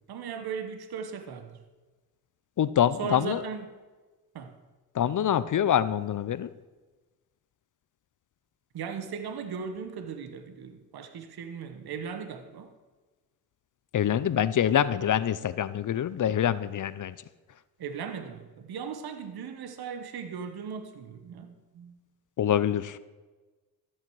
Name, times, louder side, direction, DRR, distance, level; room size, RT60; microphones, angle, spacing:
voice 1, 0.1-1.6 3.0-3.7 4.3-4.6 8.7-12.7 17.8-22.0, right 6 dB, 65° right, 1.2 m, -37 dB
voice 2, 2.6-3.4 4.9-6.5 13.9-17.2 22.4-23.0, left 10 dB, 50° left, 0.6 m, -25 dB
13.5 x 8.7 x 4.8 m
cardioid pair, 75°, 41 cm